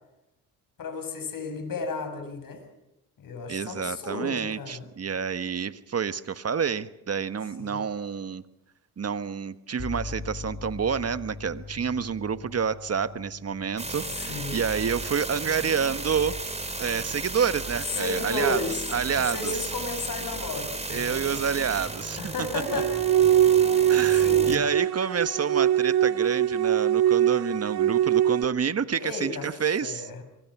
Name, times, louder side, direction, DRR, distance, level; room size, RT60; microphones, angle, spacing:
voice 1, 0.8-2.6 3.2-4.8 7.6-7.8 14.2-14.6 18.0-18.8 19.1-21.2 22.2-22.9 24.2-24.6 28.9-29.4 29.8-30.2, left 3 dB, 55° left, 8 dB, 6.6 m, -33 dB
voice 2, 3.5-8.4 9.0-16.3 16.8-18.6 18.9-19.7 20.9-22.3 22.7-22.8 23.9-30.1, right 6 dB, 40° right, 12 dB, 1.4 m, -28 dB
sound 1, 9.8-17.5, left 4 dB, 30° left, 2.5 m, -42 dB
sound 2, 13.8-24.6, right 2 dB, 15° right, 3.3 m, -34 dB
sound 3, 22.7-28.4, right 10 dB, 65° right, 1.0 m, -22 dB
26.0 x 23.0 x 6.1 m, 0.88 s
supercardioid pair, 70°, 39 cm